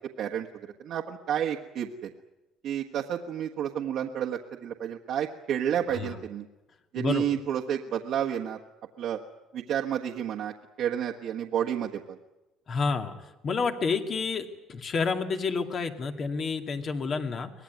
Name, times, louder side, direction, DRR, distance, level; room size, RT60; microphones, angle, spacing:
voice 1, 0.8-2.1 2.6-6.4 6.9-8.6 9.0-9.2 9.5-12.2, right 9 dB, 60° right, 0 dB, 1.5 m, -30 dB
voice 2, 6.9-7.3 12.7-13.1 13.4-17.5, left 4 dB, 40° left, 5 dB, 2.3 m, -29 dB
24.0 x 18.5 x 9.4 m, 1.0 s
cardioid pair, 115°, 0 cm